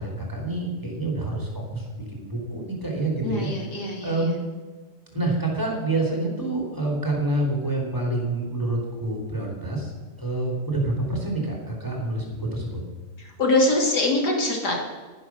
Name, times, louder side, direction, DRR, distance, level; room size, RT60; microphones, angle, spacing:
voice 1, 0.0-3.5 4.0-4.4 5.1-9.9 10.2-12.8, right 2 dB, 10° right, -1 dB, 3.1 m, -27 dB
voice 2, 3.2-4.3 13.2-14.8, left 2 dB, 85° left, 0 dB, 2.9 m, -23 dB
11.0 x 10.0 x 6.1 m, 1.3 s
omnidirectional pair, 1.7 m